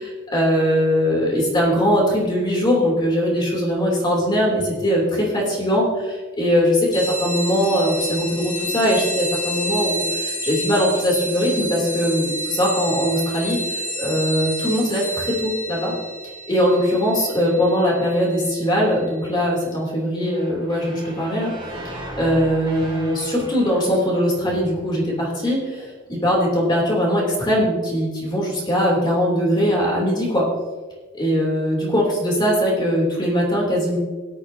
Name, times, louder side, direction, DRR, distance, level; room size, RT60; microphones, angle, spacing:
voice 1, 0.0-15.9 16.5-21.5 22.2-30.4 31.1-34.0, equal, 25° left, -3 dB, 3.1 m, -21 dB
sound 1, 6.9-19.0, equal, 40° left, 4.1 m, -29 dB
sound 2, 20.2-25.2, right 1 dB, 25° right, 2.2 m, -37 dB
17.0 x 11.0 x 2.8 m, 1.4 s
head